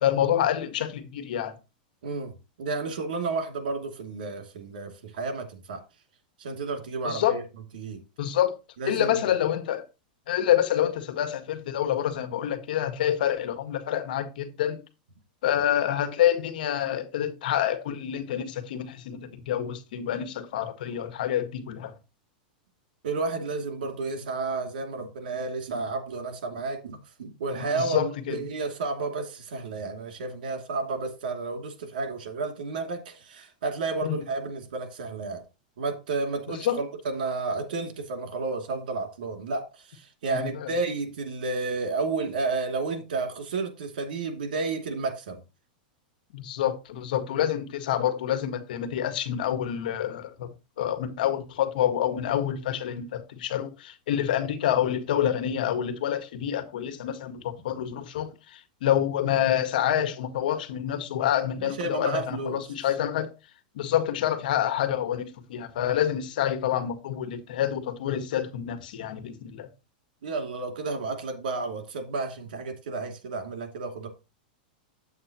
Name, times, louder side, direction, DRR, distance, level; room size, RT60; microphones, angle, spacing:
voice 1, 0.0-1.5 7.0-7.4 8.2-8.6 8.8-9.9 10.3-14.8 15.4-21.9 27.7-28.4 34.0-34.2 36.5-36.8 40.3-40.7 46.3-50.5 50.8-63.3 63.7-69.7, left 10 dB, 75° left, 1.6 m, -27 dB
voice 2, 2.0-2.3 2.6-5.8 6.4-7.4 7.7-8.0 8.8-9.2 23.0-35.4 35.8-45.4 61.6-62.6 70.2-74.1, right 3 dB, 80° right, 2.7 m, -31 dB
8.9 x 8.0 x 3.0 m
supercardioid pair, 140°, 5 cm